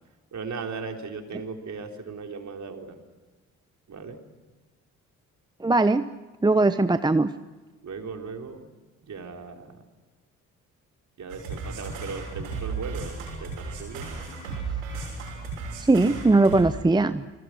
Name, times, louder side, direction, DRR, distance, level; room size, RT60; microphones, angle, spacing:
voice 1, 0.3-3.0 3.9-4.2 7.8-8.6 9.0-9.8 11.2-14.1, right 4 dB, 45° right, 3 dB, 3.9 m, -37 dB
voice 2, 5.6-6.0 6.4-7.3 15.8-17.2, right 2 dB, 10° right, 12 dB, 0.8 m, -20 dB
sound 1, 11.3-16.6, right 4 dB, 80° right, 6.4 m, -35 dB
30.0 x 21.5 x 6.3 m, 1.3 s
figure-of-eight pair, 45°, 41 cm